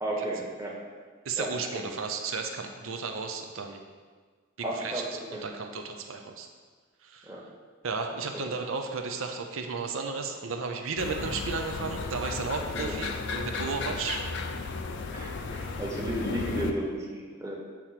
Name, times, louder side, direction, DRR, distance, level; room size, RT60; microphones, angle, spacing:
voice 1, 0.0-0.8 1.4-1.5 1.8-1.9 4.6-5.4 7.2-7.4 8.1-8.5 12.8-13.0 15.1-17.6, right 1 dB, 15° right, -3 dB, 1.1 m, -34 dB
voice 2, 1.2-3.8 4.6-6.5 7.0-7.3 7.8-14.3, right 4 dB, 90° right, 4 dB, 0.6 m, -34 dB
sound 1, 11.0-16.7, left 4 dB, 60° left, 0.5 m, -34 dB
8.2 x 3.0 x 5.7 m, 1.5 s
head